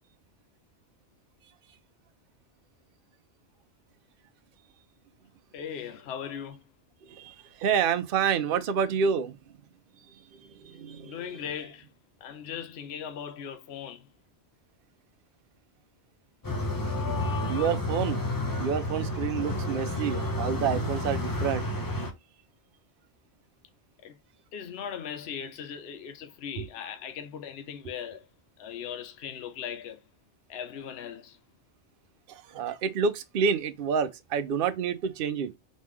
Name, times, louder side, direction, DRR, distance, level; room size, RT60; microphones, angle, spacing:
voice 1, 5.5-6.6 11.0-11.9 12.2-14.1 24.0-24.2 24.5-28.3 28.6-30.0 30.5-31.4, left 8 dB, 65° left, 0.9 m, -39 dB
voice 2, 7.1-9.4 10.6-11.2 17.1-18.2 18.6-21.6 26.6-26.7 32.3-35.5, right 7 dB, 60° right, 0.7 m, -28 dB
sound 1, 16.4-22.1, left 1 dB, 25° left, 0.6 m, -30 dB
4.1 x 3.2 x 3.6 m
omnidirectional pair, 1.2 m